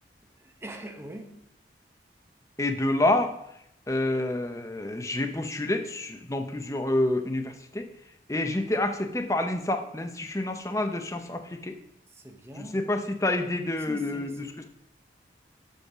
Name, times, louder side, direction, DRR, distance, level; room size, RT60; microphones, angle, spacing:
voice 1, 0.4-1.3 12.1-12.8 13.9-14.6, right 1 dB, 15° right, 4 dB, 0.9 m, -42 dB
voice 2, 2.6-3.3 3.9-7.9 8.3-11.7 12.6-14.4, left 1 dB, 20° left, 6 dB, 0.7 m, -28 dB
6.5 x 5.3 x 6.1 m, 0.77 s
head